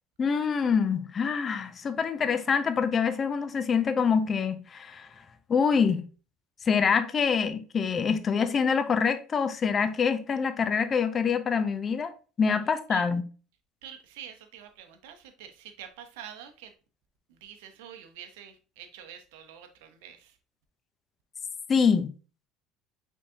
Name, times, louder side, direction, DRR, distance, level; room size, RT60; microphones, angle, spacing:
voice 1, 0.2-5.1 5.5-6.1 6.7-13.2 21.7-22.1, left 6 dB, 35° left, 0.6 m, -25 dB
voice 2, 13.8-16.7 17.3-20.4, right 9 dB, 85° right, 0.7 m, -46 dB
5.3 x 3.6 x 2.7 m
supercardioid pair, 95°, 0 cm